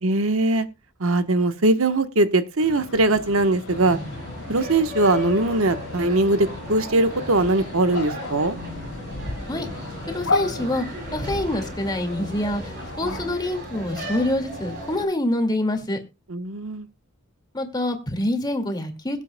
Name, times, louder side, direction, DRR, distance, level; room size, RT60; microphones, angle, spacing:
voice 1, 0.0-0.7 1.0-4.0 4.5-8.6 16.3-16.9, right 2 dB, 70° right, 1.1 m, -21 dB
sound 1, 2.6-13.3, left 2 dB, 70° left, 2.3 m, -34 dB
sound 2, 3.7-15.0, left 1 dB, 55° right, 7.0 m, -35 dB
voice 2, 10.1-10.8 11.1-16.0 17.5-19.2, left 1 dB, 20° left, 2.0 m, -26 dB
22.0 x 8.4 x 2.2 m
head